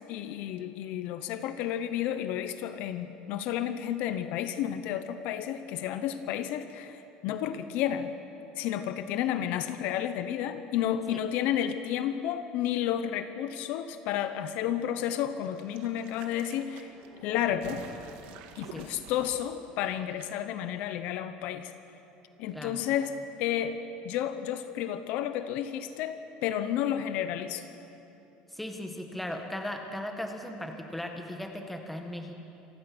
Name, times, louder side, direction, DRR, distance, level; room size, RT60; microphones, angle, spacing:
voice 1, 0.0-8.1 8.6-16.9 17.2-17.8 18.6-21.7 22.4-23.1 23.4-23.8 24.0-27.6, left 10 dB, 60° left, 10 dB, 0.9 m, -31 dB
sound 1, 15.4-20.3 20.5-20.6, right 7 dB, 65° right, 1.8 m, -48 dB
voice 2, 28.5-32.3, left 1 dB, 5° left, 3 dB, 1.7 m, -37 dB
27.0 x 16.0 x 6.2 m, 2.9 s
cardioid pair, 160°, 3 cm